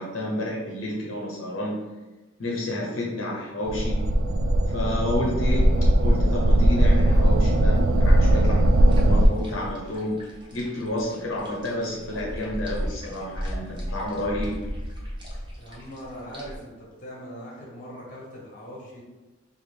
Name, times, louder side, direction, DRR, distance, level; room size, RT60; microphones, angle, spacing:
voice 1, 0.0-1.8 2.4-4.0 4.7-10.2 10.5-14.6, left 1 dB, 85° left, -3 dB, 0.8 m, -30 dB
sound 1, 3.6-9.3, right 1 dB, 90° right, 0.4 m, -19 dB
sound 2, 8.7-16.5, equal, 25° right, 0.7 m, -36 dB
voice 2, 15.6-19.0, equal, 40° left, -4 dB, 1.4 m, -40 dB
4.8 x 2.5 x 3.4 m, 1.2 s
head